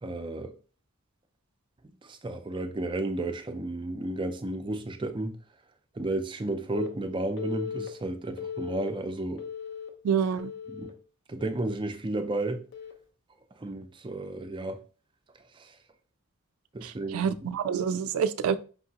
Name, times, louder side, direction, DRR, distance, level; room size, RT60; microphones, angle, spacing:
voice 1, 0.0-0.5 1.8-5.4 5.9-9.4 10.7-10.9 11.3-12.6 13.6-14.8 15.5-15.8 16.7-17.3, right 2 dB, 25° right, 0.4 m, -33 dB
Telephone, 6.7-6.9 7.4-7.9 8.4-8.9 9.4-9.9 10.4-10.9 11.4-11.7 12.7-12.9, left 7 dB, 55° left, 0.6 m, -37 dB
voice 2, 10.0-10.5 16.8-18.6, right 7 dB, 90° right, 0.3 m, -27 dB
5.2 x 2.8 x 2.8 m
head